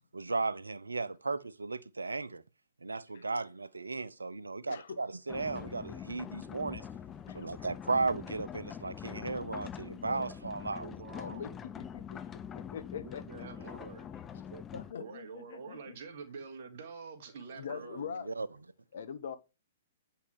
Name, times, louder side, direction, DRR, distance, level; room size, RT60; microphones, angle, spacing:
voice 1, 0.1-2.4 2.8-6.9 7.3-10.9 17.7-18.5, right 3 dB, 85° right, 0.8 m, -35 dB
voice 2, 4.7-5.0 7.3-7.5 10.0-10.3 11.1-11.5 11.8-13.2 14.7-16.0 17.5-18.3 18.9-19.4, left 7 dB, 60° left, 1.3 m, -43 dB
sound 1, 5.3-14.9, left 8 dB, 20° left, 0.7 m, -44 dB
voice 3, 10.8-11.5 12.9-14.6 15.0-18.0, right 5 dB, 55° right, 2.5 m, -47 dB
9.6 x 5.8 x 4.8 m
figure-of-eight pair, 120°, 0 cm